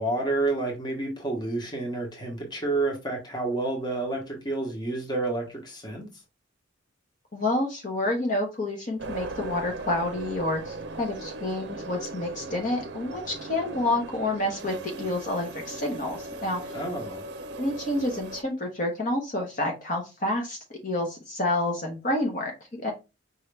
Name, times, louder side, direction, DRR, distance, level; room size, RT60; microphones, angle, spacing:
voice 1, 0.0-6.1 16.7-17.2, right 2 dB, 20° left, 1.3 m, -29 dB
voice 2, 7.3-16.7 17.6-22.9, left 1 dB, 40° left, 1.2 m, -29 dB
sound 1, 9.0-18.4, right 2 dB, 60° right, 0.6 m, -38 dB
5.4 x 2.9 x 3.4 m
head